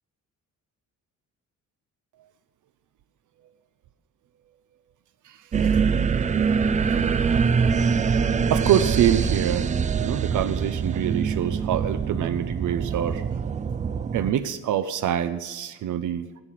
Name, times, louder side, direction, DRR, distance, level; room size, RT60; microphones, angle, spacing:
sound 1, 5.5-14.3, right 6 dB, 25° right, 0.4 m, -24 dB
voice 1, 8.5-9.7 10.0-13.2 14.1-16.3, right 10 dB, 75° right, 10 dB, 0.7 m, -25 dB
15.5 x 5.9 x 8.5 m, 1.2 s
cardioid pair, 175°, 31 cm